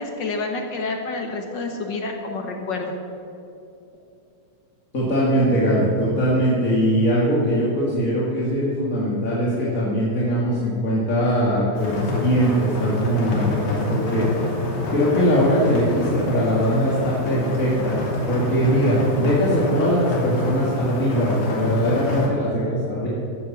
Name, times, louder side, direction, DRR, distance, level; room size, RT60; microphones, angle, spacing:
voice 1, 0.0-2.9, left 3 dB, 55° left, 3 dB, 1.3 m, -28 dB
voice 2, 4.9-14.3 14.9-18.0 18.3-23.1, equal, 30° left, -7 dB, 1.9 m, -21 dB
sound 1, 11.7-22.3, left 2 dB, 85° left, 4.0 m, -27 dB
13.5 x 8.6 x 7.2 m, 2.7 s
omnidirectional pair, 3.4 m